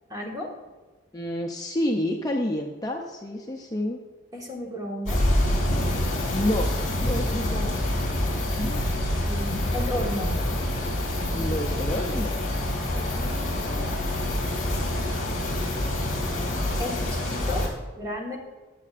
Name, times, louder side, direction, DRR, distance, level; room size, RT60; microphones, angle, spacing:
voice 1, 0.1-0.5 4.3-5.3 7.3-7.8 9.2-10.4 12.9-13.9 16.8-17.7 18.0-18.4, left 1 dB, 20° right, -1 dB, 1.5 m, -34 dB
voice 2, 1.1-4.0 6.3-7.9 8.6-8.8 11.3-12.4, left 1 dB, 20° left, 1 dB, 0.5 m, -29 dB
sound 1, 5.1-17.7, left 1 dB, 40° left, 3.1 m, -26 dB
13.5 x 8.4 x 2.5 m, 1.3 s
head